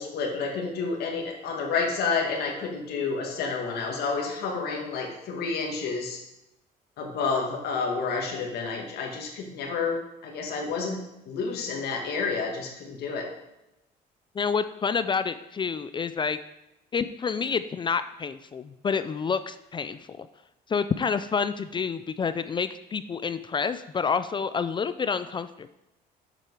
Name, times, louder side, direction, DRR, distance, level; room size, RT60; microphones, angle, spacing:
voice 1, 0.0-6.2 7.0-11.0 11.3-13.3, left 4 dB, 75° left, 1 dB, 2.0 m, -30 dB
voice 2, 14.4-16.4 16.9-20.3 20.7-25.7, left 6 dB, 30° left, 12 dB, 0.4 m, -28 dB
7.9 x 7.5 x 4.7 m, 0.90 s
cardioid pair, 110°, 17 cm